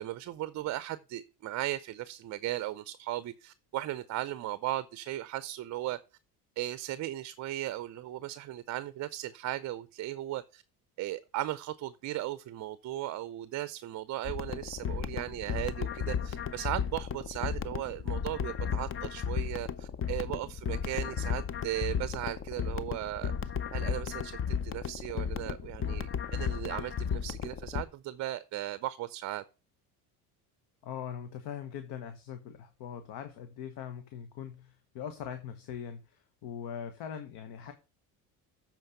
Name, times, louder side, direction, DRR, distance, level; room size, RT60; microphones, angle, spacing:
voice 1, 0.0-6.0 6.6-10.6 11.0-23.3 23.7-29.4, right 14 dB, 40° right, 0.5 m, -37 dB
sound 1, 14.2-27.8, left 7 dB, 30° left, 0.6 m, -34 dB
voice 2, 30.8-37.7, left 8 dB, 60° left, 1.2 m, -41 dB
7.8 x 4.5 x 6.5 m
hypercardioid pair, 75°, 47 cm